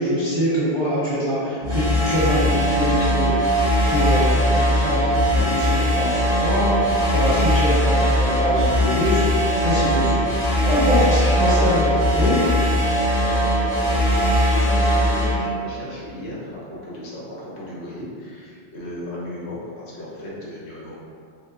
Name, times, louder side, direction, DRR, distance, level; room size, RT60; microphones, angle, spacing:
voice 1, 0.0-6.8 7.1-10.2 10.6-11.8 12.2-12.4, equal, 25° right, -11 dB, 0.7 m, -24 dB
sound 1, 1.6-15.3, equal, 40° left, 1.4 m, -20 dB
voice 2, 6.6-7.4 8.7-8.8 11.3-12.0 13.3-21.0, left 1 dB, 70° left, -6 dB, 1.0 m, -35 dB
4.7 x 2.0 x 2.5 m, 2.3 s
omnidirectional pair, 1.2 m